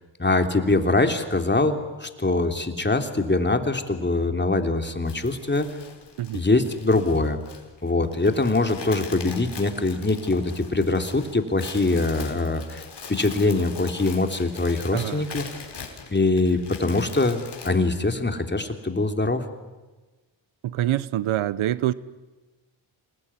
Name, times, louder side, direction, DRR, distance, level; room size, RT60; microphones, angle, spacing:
voice 1, 0.2-5.7 6.3-7.4 7.8-15.5 16.1-19.4, left 2 dB, 20° left, 6 dB, 3.2 m, -23 dB
sound 1, 5.1-17.7, left 5 dB, 55° left, 4.8 m, -41 dB
voice 2, 14.9-15.3 20.6-21.9, right 13 dB, 85° right, 18 dB, 0.9 m, -25 dB
27.0 x 20.5 x 9.9 m, 1.2 s
cardioid pair, 65°, 47 cm